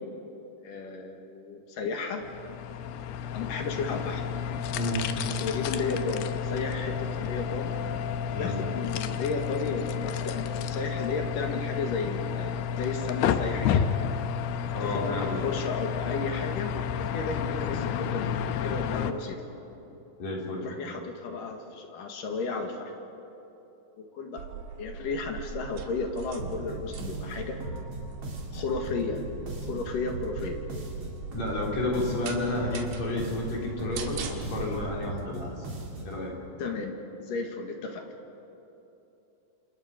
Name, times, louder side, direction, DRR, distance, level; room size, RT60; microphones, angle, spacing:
voice 1, 0.6-2.2 3.3-4.2 5.4-7.8 8.3-13.9 14.8-19.4 20.6-22.9 24.0-24.5 24.8-27.6 28.5-29.2 29.6-30.6 32.0-32.2 36.6-38.0, left 4 dB, 60° left, 4 dB, 3.2 m, -33 dB
sound 1, 2.2-19.1, left 8 dB, 85° left, 2.9 m, -31 dB
voice 2, 4.7-5.1 8.3-8.6 14.7-15.4 20.2-20.7 31.3-35.6 36.0-36.4, left 2 dB, 45° left, -2 dB, 4.7 m, -31 dB
sound 2, 24.4-34.9, right 7 dB, 85° right, 3.6 m, -41 dB
sound 3, 26.4-36.2, right 1 dB, 40° right, 4.2 m, -39 dB
28.5 x 27.5 x 5.2 m, 3.0 s
omnidirectional pair, 4.5 m